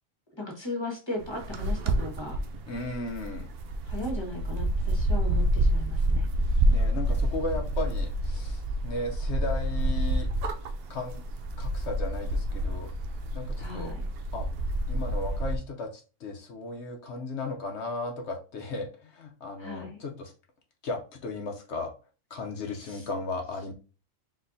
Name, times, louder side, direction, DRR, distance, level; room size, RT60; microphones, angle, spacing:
voice 1, 0.3-2.4 3.9-6.3 13.6-14.1 19.6-20.0 22.7-23.1, left 2 dB, 20° left, 0 dB, 1.3 m, -37 dB
sound 1, 1.2-15.6, right 1 dB, 55° right, 0.7 m, -28 dB
voice 2, 2.7-3.5 6.7-10.3 10.9-11.2 11.6-12.9 13.3-13.9 14.3-14.5 14.9-20.3 20.8-21.9 22.3-23.7, left 3 dB, 60° left, 3 dB, 1.0 m, -35 dB
4.2 x 3.9 x 2.6 m, 0.34 s
omnidirectional pair, 1.4 m